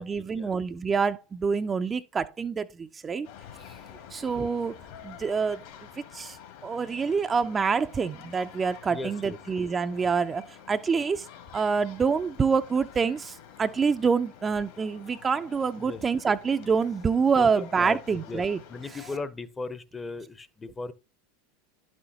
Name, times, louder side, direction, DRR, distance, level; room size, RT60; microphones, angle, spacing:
voice 1, 0.0-3.3 4.1-4.8 5.0-5.6 6.1-6.4 6.6-11.3 11.5-18.6, right 5 dB, 25° right, 0.4 m, -26 dB
sound 1, 3.2-19.2, left 9 dB, 65° left, 2.4 m, -49 dB
voice 2, 8.9-9.4 15.8-16.0 17.4-18.4 18.7-20.9, left 3 dB, 15° left, 0.7 m, -37 dB
11.0 x 6.2 x 2.8 m
hypercardioid pair, 85°, 0 cm